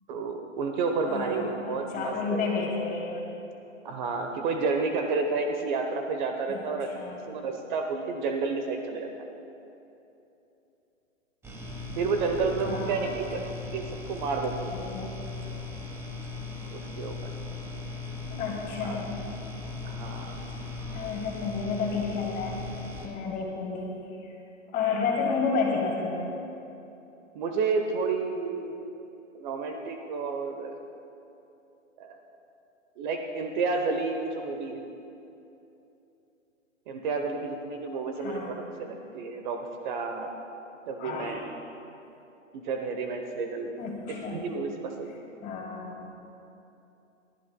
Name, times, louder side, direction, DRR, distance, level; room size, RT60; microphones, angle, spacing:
voice 1, 0.1-2.6 3.8-9.1 11.9-13.5 13.7-14.7 16.7-17.1 18.8-19.0 19.8-20.4 27.3-28.7 29.3-30.7 32.0-32.2 33.0-34.8 36.9-40.3 40.9-41.4 42.5-43.7 44.3-45.1, right 4 dB, 35° right, 4 dB, 0.9 m, -30 dB
voice 2, 1.1-3.2 6.5-7.3 12.6-13.3 14.7-15.1 18.3-19.1 20.9-22.7 23.0-24.3 24.7-26.3 38.2-38.6 41.0-41.4 43.8-44.5 45.4-46.1, left 4 dB, 20° left, -1 dB, 2.1 m, -31 dB
sound 1, 11.4-23.1, left 3 dB, 5° right, 1.1 m, -38 dB
30.0 x 11.0 x 2.2 m, 2.9 s
hypercardioid pair, 130°, 39 cm